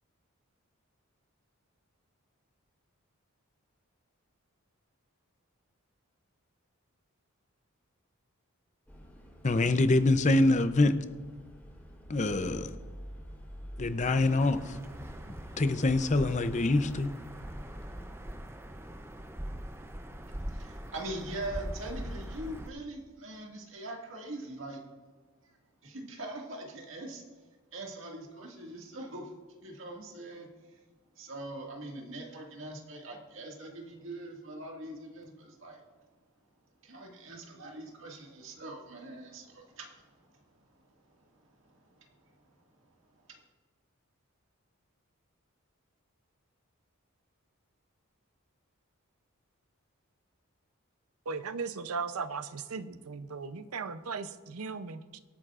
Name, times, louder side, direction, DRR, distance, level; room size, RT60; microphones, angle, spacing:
sound 1, 8.9-18.1, equal, 10° left, 3.6 m, -49 dB
voice 1, 9.4-10.9 12.1-12.7 13.8-14.8 15.6-17.1, left 2 dB, 35° left, 0.6 m, -25 dB
sound 2, 14.0-22.7, right 1 dB, 10° right, 0.6 m, -42 dB
voice 2, 20.2-24.8 25.8-27.2 27.7-29.3 29.6-30.8 31.2-35.8 36.8-40.4 41.6-42.2 43.3-43.4, right 1 dB, 60° right, 2.0 m, -42 dB
voice 3, 51.3-55.2, right 5 dB, 85° right, 0.6 m, -37 dB
23.5 x 8.9 x 2.5 m
head